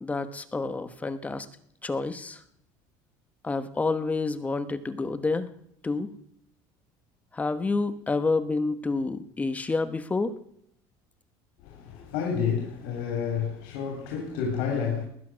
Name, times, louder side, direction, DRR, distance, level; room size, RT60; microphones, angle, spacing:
voice 1, 0.0-1.5 1.8-2.4 3.4-5.5 5.8-6.1 7.3-10.3, left 3 dB, 15° left, 1.1 m, -28 dB
voice 2, 11.6-15.0, left 6 dB, 85° left, 3.6 m, -30 dB
19.5 x 10.5 x 6.3 m
cardioid pair, 135°, 10 cm